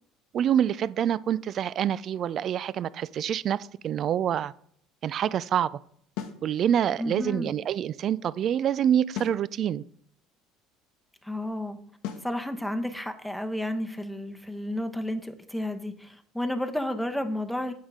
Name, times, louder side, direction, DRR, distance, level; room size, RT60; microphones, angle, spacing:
voice 1, 0.3-4.5 5.0-5.7 6.4-9.8, right 9 dB, 50° right, 19 dB, 0.3 m, -26 dB
sound 1, 6.2-6.5 9.2-9.5 12.0-12.3, left 9 dB, 75° left, 0.9 m, -35 dB
voice 2, 7.0-7.5 11.2-11.8 12.2-17.7, left 1 dB, ahead, 7 dB, 0.9 m, -31 dB
8.5 x 5.6 x 3.7 m, 0.65 s
supercardioid pair, 85°, 0 cm